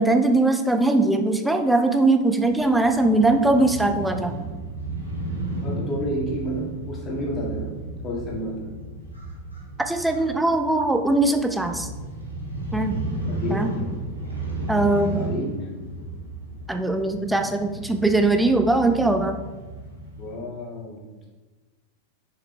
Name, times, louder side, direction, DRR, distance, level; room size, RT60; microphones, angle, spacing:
voice 1, 0.0-4.3 9.9-11.9 12.7-13.0 13.5-13.7 14.7-15.3 16.7-19.4, right 2 dB, 5° right, 6 dB, 0.6 m, -21 dB
Crow / Motorcycle, 2.4-20.3, right 1 dB, 85° right, 2.0 m, -34 dB
voice 2, 5.6-7.7 8.0-8.7 13.3-13.6 15.1-15.7 20.2-21.1, equal, 25° left, -3 dB, 2.0 m, -30 dB
6.7 x 5.4 x 3.3 m, 1.3 s
figure-of-eight pair, 90°, 0 cm